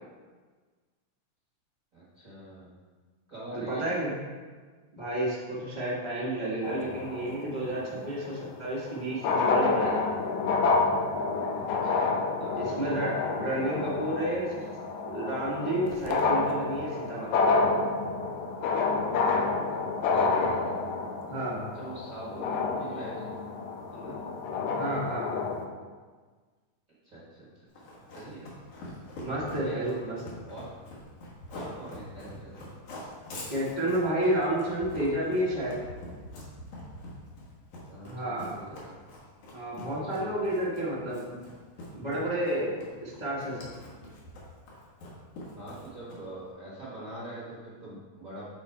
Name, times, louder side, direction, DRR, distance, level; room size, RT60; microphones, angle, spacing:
voice 1, 1.9-2.7 3.3-3.9 11.6-13.0 20.1-20.7 21.7-22.4 22.8-23.3 23.9-24.2 27.0-28.5 29.4-29.9 30.5-30.7 31.5-32.7 37.9-38.9 40.0-40.3 45.5-48.5, right 2 dB, 85° right, -8 dB, 0.7 m, -43 dB
voice 2, 3.5-4.1 4.9-9.9 12.6-14.6 15.1-17.4 21.3-21.6 24.8-25.4 29.2-30.4 33.5-35.7 38.0-38.6 39.5-41.4 41.9-43.7, right 1 dB, 20° left, -8 dB, 0.8 m, -31 dB
sound 1, 6.6-7.7 8.9-9.0 9.1-25.7, left 4 dB, 85° left, 1.7 m, -29 dB
Run, 27.7-46.4, left 1 dB, 65° left, 2.7 m, -44 dB
8.4 x 3.9 x 4.6 m, 1.4 s
omnidirectional pair, 4.1 m